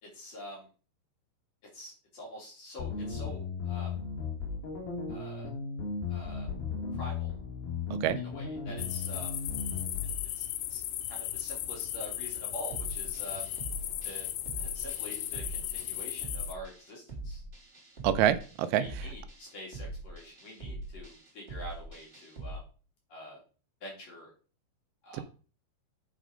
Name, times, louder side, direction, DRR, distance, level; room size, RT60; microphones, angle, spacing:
voice 1, 0.0-0.7 1.7-3.9 5.1-5.5 6.1-6.5 6.9-7.4 8.2-9.3 10.4-10.5 10.7-10.8 11.1-13.5 14.0-14.3 14.6-17.4 18.8-22.6 23.1-23.4 23.8-24.3 25.0-25.2, equal, 40° left, -3 dB, 3.9 m, -46 dB
sound 1, 2.8-10.2, left 5 dB, 65° left, 3.6 m, -36 dB
sound 2, 8.8-16.5, left 13 dB, 90° left, 2.9 m, -36 dB
sound 3, 12.7-22.6, right 2 dB, 25° right, 1.4 m, -43 dB
voice 2, 18.0-19.1 25.1-25.2, right 10 dB, 85° right, 11 dB, 2.9 m, -27 dB
8.3 x 5.1 x 5.0 m, 0.37 s
omnidirectional pair, 5.0 m